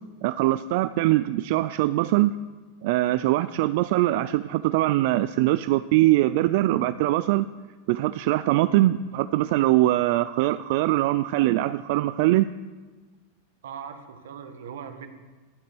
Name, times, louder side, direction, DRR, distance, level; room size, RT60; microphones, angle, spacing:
voice 1, 0.2-2.3 2.8-7.5 7.9-12.5, right 16 dB, 55° right, 13 dB, 0.4 m, -22 dB
voice 2, 13.6-15.1, right 7 dB, 85° right, 8 dB, 1.4 m, -39 dB
12.0 x 8.6 x 6.2 m, 1.3 s
supercardioid pair, 145°, 0 cm